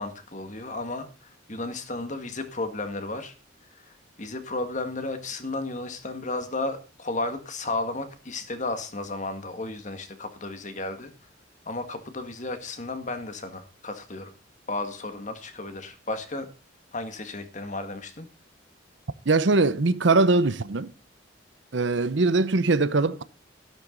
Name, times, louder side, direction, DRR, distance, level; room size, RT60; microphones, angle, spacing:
voice 1, 0.0-3.3 3.8-11.1 11.7-14.3 14.7-16.5 16.9-18.3, left 2 dB, 40° left, 1.9 m, -33 dB
voice 2, 19.3-20.9 21.7-23.2, right 3 dB, 70° right, 0.8 m, -21 dB
13.0 x 12.0 x 3.9 m
head